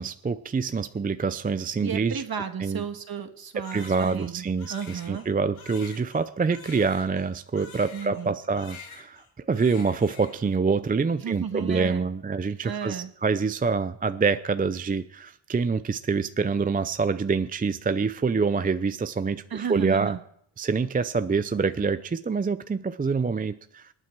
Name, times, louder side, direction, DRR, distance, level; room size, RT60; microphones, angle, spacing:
voice 1, 0.0-2.2 2.6-2.8 3.7-20.2 20.6-23.9, right 4 dB, 20° right, 11 dB, 0.5 m, -26 dB
voice 2, 1.8-5.2 7.9-8.4 11.2-12.0 12.6-13.1 19.5-20.2, right 7 dB, 45° right, 7 dB, 1.6 m, -33 dB
Crying sobbing, 3.6-8.3 8.5-9.3 9.5-10.5, left 5 dB, 85° left, 3.4 m, -46 dB
26.0 x 9.1 x 4.6 m, 0.69 s
cardioid pair, 90°, 49 cm